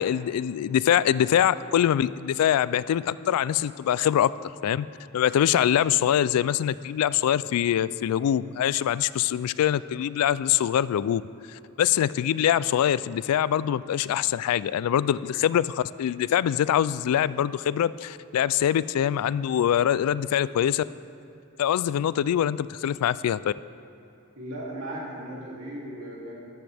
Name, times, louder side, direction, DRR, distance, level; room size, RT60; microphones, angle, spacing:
voice 1, 0.0-4.3 4.6-4.9 5.1-11.2 11.8-20.8 21.6-23.5, left 10 dB, 85° left, 17 dB, 0.3 m, -24 dB
voice 2, 24.3-26.4, right 1 dB, 70° right, -5 dB, 2.7 m, -37 dB
12.0 x 12.0 x 3.4 m, 2.7 s
head